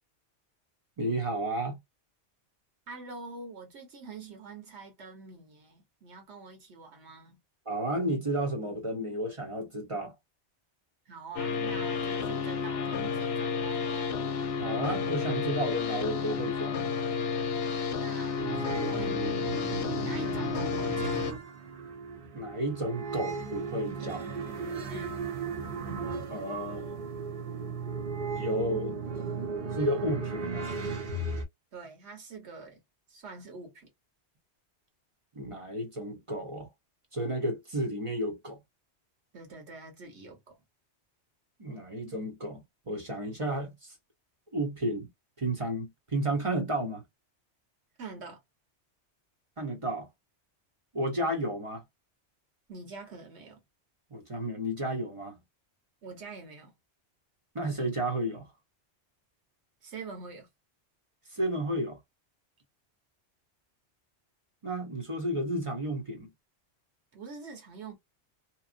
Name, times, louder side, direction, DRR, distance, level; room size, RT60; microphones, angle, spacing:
voice 1, 1.0-1.8 7.7-10.1 14.6-16.8 22.3-24.3 26.3-27.0 28.3-29.0 29.7-30.7 35.3-36.7 37.1-38.6 41.6-43.9 44.5-45.1 45.4-47.0 49.6-50.1 50.9-51.8 54.1-55.4 57.5-58.5 61.3-62.0 64.6-66.3, right 1 dB, 30° right, 0.8 m, -32 dB
voice 2, 2.9-7.4 11.1-14.2 17.9-21.2 24.9-25.2 31.7-32.8 33.1-33.9 39.3-40.6 48.0-48.4 52.7-53.6 56.0-56.7 59.8-60.5 67.1-68.0, right 4 dB, 70° right, 1.3 m, -45 dB
sound 1, 11.4-21.3, left 5 dB, 65° left, 0.8 m, -31 dB
sound 2, 18.4-31.4, right 4 dB, 55° right, 0.9 m, -36 dB
2.9 x 2.0 x 2.4 m
omnidirectional pair, 1.2 m